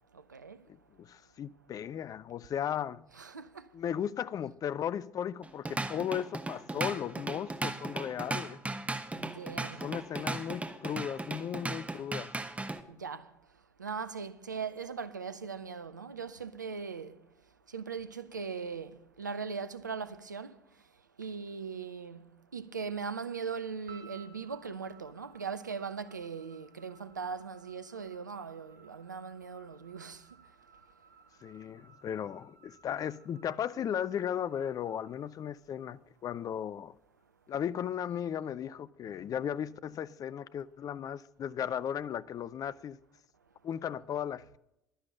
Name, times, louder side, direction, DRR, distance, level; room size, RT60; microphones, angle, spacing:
voice 1, 0.1-0.6 3.1-3.7 9.1-9.9 12.9-13.3 13.8-17.2 17.7-20.6 21.2-30.3, right 5 dB, 85° right, 0.5 m, -40 dB
voice 2, 0.7-3.0 3.7-8.6 9.8-12.3 31.4-36.9 37.5-43.0 43.6-44.6, left 9 dB, 40° left, 0.4 m, -36 dB
Drum kit / Drum, 5.4-12.8, right 2 dB, 15° right, 1.1 m, -36 dB
sound 1, 23.9-36.2, right 6 dB, 70° right, 2.1 m, -60 dB
11.5 x 11.0 x 5.6 m
figure-of-eight pair, 55°, 10 cm